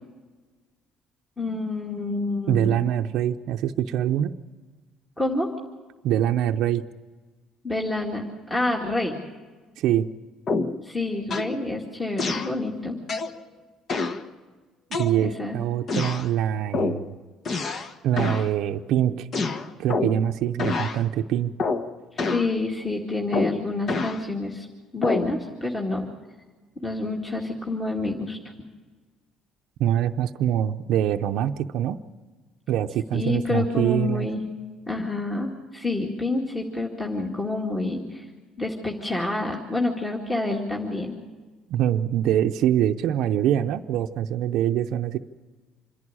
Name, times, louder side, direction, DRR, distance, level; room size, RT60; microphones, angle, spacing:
voice 1, 1.4-2.9 5.2-5.5 7.6-9.2 10.8-13.0 15.2-15.6 22.3-24.7 24.9-26.1 26.8-28.4 33.1-34.4 34.9-38.3 38.6-41.1, left 2 dB, 15° left, -1 dB, 2.1 m, -28 dB
voice 2, 2.5-4.3 6.0-6.8 9.8-10.1 14.9-17.2 18.0-19.3 19.8-21.5 29.8-32.0 32.7-34.3 41.7-45.2, right 11 dB, 70° right, 6 dB, 0.6 m, -24 dB
sound 1, 10.5-10.8 11.3-11.6 12.2-12.5 13.1-13.4 13.9-14.2 14.9-15.4 15.9-16.3 16.7-17.0 17.4-17.9 18.2-18.5 19.3-20.2 20.6-21.0 21.6-21.9 22.2-22.5 23.3-24.2 25.0-25.3, left 3 dB, 40° left, 1.1 m, -27 dB
26.5 x 11.0 x 10.0 m, 1.3 s
cardioid pair, 120°, 0 cm